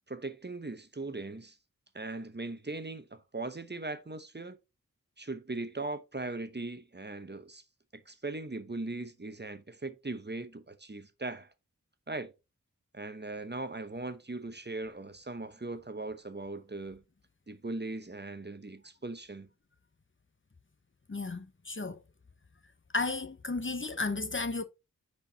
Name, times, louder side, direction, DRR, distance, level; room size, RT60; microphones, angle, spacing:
voice 1, 0.1-1.6 1.9-4.6 5.2-7.6 7.9-11.5 12.1-12.3 12.9-17.0 17.5-19.5, right 2 dB, 30° right, 0.9 m, -39 dB
voice 2, 21.1-22.0 22.9-24.6, left 3 dB, 35° left, 0.9 m, -33 dB
9.7 x 4.5 x 2.8 m
wide cardioid pair, 40°, 33 cm